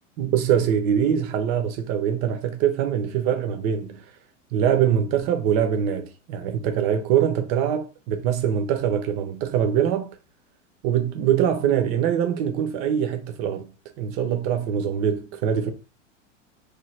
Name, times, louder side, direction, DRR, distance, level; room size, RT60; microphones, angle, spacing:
voice 1, 0.2-4.0 4.5-10.1 10.8-13.7 14.0-15.7, right 9 dB, 25° right, 0.4 m, -23 dB
3.0 x 2.2 x 3.0 m
figure-of-eight pair, 90°, 38 cm